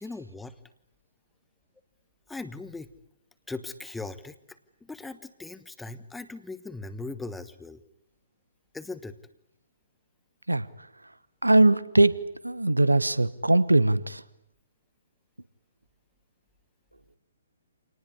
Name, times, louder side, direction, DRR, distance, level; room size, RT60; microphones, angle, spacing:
voice 1, 0.0-0.5 2.3-2.9 3.5-7.8 8.7-9.2, left 3 dB, 5° left, 12 dB, 1.1 m, -39 dB
voice 2, 11.4-14.2, right 2 dB, 85° right, 16 dB, 1.2 m, -21 dB
27.0 x 19.0 x 9.8 m, 0.81 s
figure-of-eight pair, 125°, 0 cm